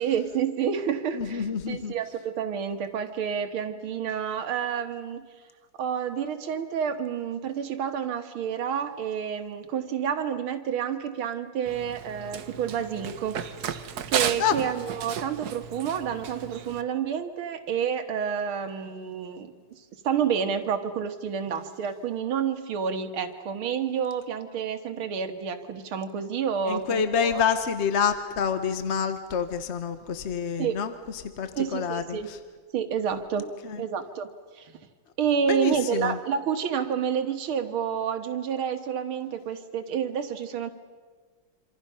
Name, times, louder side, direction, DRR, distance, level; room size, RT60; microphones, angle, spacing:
voice 1, 0.0-5.2 5.8-13.4 14.1-19.5 20.0-27.4 30.6-30.8 31.6-32.3 32.7-33.5 33.8-34.7 35.2-40.7, right 7 dB, 90° right, 7 dB, 2.2 m, -29 dB
voice 2, 1.1-1.9 14.4-14.6 26.7-32.4 33.6-33.8 35.5-36.2, left 7 dB, 45° left, 9 dB, 0.9 m, -27 dB
Run, 11.7-16.8, right 8 dB, 55° right, 1.3 m, -34 dB
27.0 x 26.5 x 5.6 m, 1.5 s
omnidirectional pair, 2.2 m